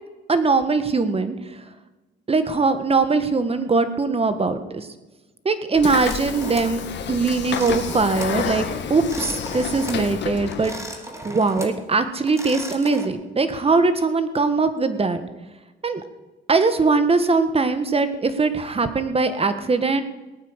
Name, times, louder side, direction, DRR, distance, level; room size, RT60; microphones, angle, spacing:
voice 1, 0.3-1.3 2.3-4.9 5.4-10.7 11.2-15.2 15.8-16.0 16.5-20.0, right 4 dB, 30° right, 10 dB, 1.6 m, -21 dB
Train / Sliding door, 5.7-10.8, left 7 dB, 65° left, 1.8 m, -29 dB
sound 1, 6.0-6.8 7.5-8.4 8.9-10.1 10.5-11.8 12.2-13.1, right 1 dB, 15° right, 3.0 m, -37 dB
18.5 x 9.4 x 8.2 m, 1.1 s
cardioid pair, 90°, 20 cm